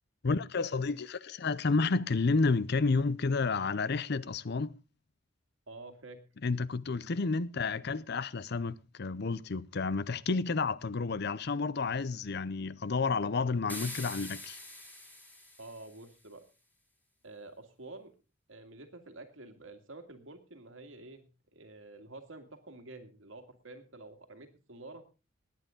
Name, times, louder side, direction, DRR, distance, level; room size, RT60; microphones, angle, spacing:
voice 1, 0.2-4.7 6.4-14.6, left 4 dB, 55° left, 0.6 m, -30 dB
voice 2, 5.7-6.2 15.6-16.4 17.2-18.1 18.5-25.0, right 2 dB, 80° right, 2.2 m, -49 dB
sound 1, 13.7-16.1, left 1 dB, 10° left, 3.0 m, -44 dB
19.5 x 9.2 x 3.8 m
head